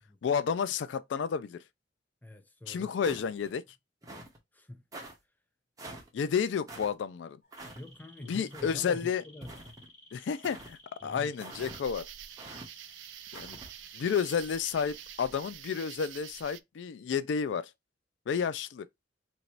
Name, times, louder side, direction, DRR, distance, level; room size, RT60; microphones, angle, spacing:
voice 1, 0.2-1.6 2.7-3.6 6.1-7.4 8.3-9.2 10.1-12.1 13.3-13.6 13.9-17.7 18.3-18.9, left 6 dB, 75° left, 0.3 m, -31 dB
voice 2, 2.2-2.9 4.5-4.8 7.7-9.6 11.0-11.3, left 1 dB, 10° left, 0.5 m, -45 dB
sound 1, 3.0-3.5 4.0-4.4 4.9-5.1 5.8-6.1 6.7-6.9 7.5-7.8 8.5-8.8 9.4-9.9 10.4-10.7 11.4-11.8 12.4-12.7 13.3-13.7, right 2 dB, 20° right, 1.0 m, -45 dB
sound 2, 7.4-15.2, left 1 dB, 45° left, 1.4 m, -56 dB
sound 3, 11.5-16.6, right 13 dB, 80° right, 0.3 m, -47 dB
3.0 x 2.6 x 4.4 m
head